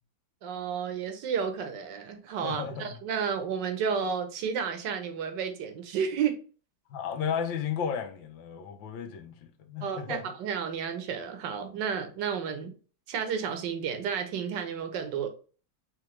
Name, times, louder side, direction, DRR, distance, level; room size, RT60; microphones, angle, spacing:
voice 1, 0.4-6.4 9.8-12.7 13.1-15.3, right 7 dB, 70° right, 1.4 m, -32 dB
voice 2, 2.4-3.0 6.9-9.3 9.7-10.2, left 7 dB, 75° left, 1.5 m, -33 dB
4.9 x 3.3 x 3.1 m
omnidirectional pair, 2.1 m